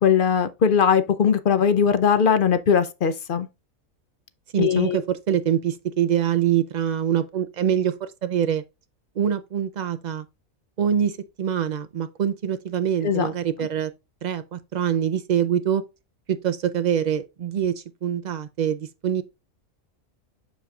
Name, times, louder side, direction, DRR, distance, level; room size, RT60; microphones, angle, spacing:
voice 1, 0.0-3.5 4.6-5.0 13.0-13.3, left 7 dB, 55° left, 0.6 m, -20 dB
voice 2, 4.5-8.6 9.2-10.2 10.8-13.9 14.2-15.8 16.3-19.2, right 9 dB, 90° right, 0.3 m, -24 dB
7.2 x 6.7 x 2.4 m
omnidirectional pair, 1.4 m